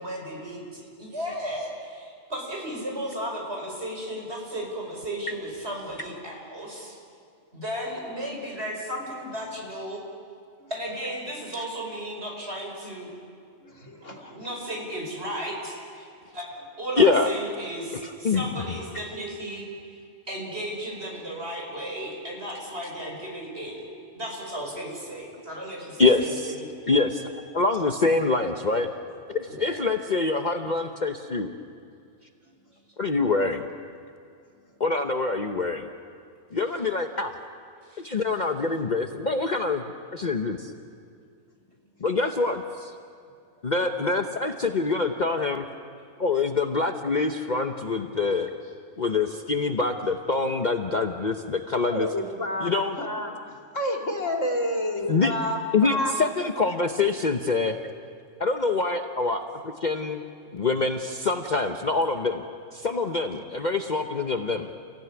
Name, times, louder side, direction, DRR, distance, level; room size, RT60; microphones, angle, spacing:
voice 1, 0.0-7.0 7.5-10.0 10.7-13.1 14.0-16.1 16.3-20.0 20.3-23.8 24.1-26.7 29.5-29.8 37.9-38.0, equal, 55° right, 0 dB, 5.4 m, -35 dB
voice 2, 13.6-14.2 32.4-32.5 51.9-56.1, left 1 dB, 80° left, 0 dB, 3.2 m, -29 dB
voice 3, 17.0-17.3 18.0-18.4 26.0-26.5 26.9-27.2 27.5-28.9 29.3-31.5 33.0-33.7 34.8-35.9 36.5-37.4 38.0-40.7 42.0-42.9 43.6-45.7 46.2-48.5 49.0-52.1 52.6-53.0 55.1-55.3 55.7-57.8 58.4-60.2 60.5-62.4 62.7-64.7, left 3 dB, 40° left, 5 dB, 1.0 m, -25 dB
29.5 x 16.0 x 9.6 m, 2.3 s
omnidirectional pair, 1.3 m